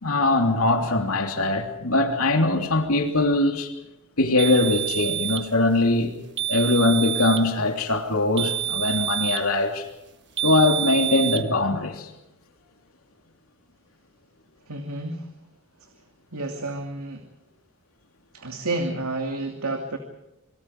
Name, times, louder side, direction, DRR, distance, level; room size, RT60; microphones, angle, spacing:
voice 1, 0.0-3.7 4.2-6.1 6.5-9.9 10.4-12.1, left 2 dB, 75° left, 3.2 m, -22 dB
sound 1, 4.4-5.5 6.4-7.5 8.4-9.5 10.4-11.4, right 11 dB, 55° right, 1.3 m, -27 dB
voice 2, 14.7-15.3 15.8-15.9 16.3-17.2 18.3-20.0, right 2 dB, 85° right, 2.7 m, -30 dB
27.5 x 23.5 x 4.9 m
head